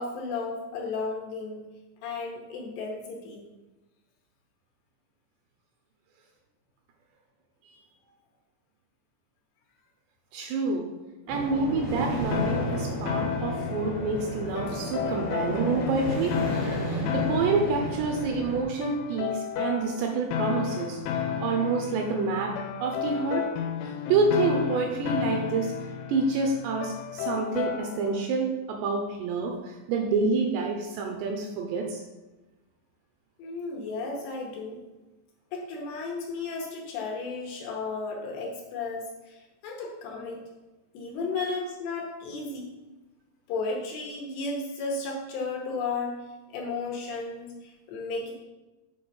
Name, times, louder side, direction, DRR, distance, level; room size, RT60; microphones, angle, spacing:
voice 1, 0.0-1.7 2.0-3.5 33.4-34.8 35.5-40.4 40.9-42.7 43.5-46.2 46.5-48.3, left 3 dB, 75° left, -1 dB, 2.8 m, -34 dB
voice 2, 10.3-10.9 11.3-16.4 16.9-23.5 23.8-25.7 26.1-32.0 41.4-41.5, right 4 dB, 80° right, 2 dB, 2.6 m, -28 dB
sound 1, 11.3-18.6, right 1 dB, 35° left, 0.7 m, -33 dB
sound 2, 12.3-28.2, left 8 dB, 90° left, 3.1 m, -32 dB
7.7 x 3.9 x 5.4 m, 1.1 s
omnidirectional pair, 5.5 m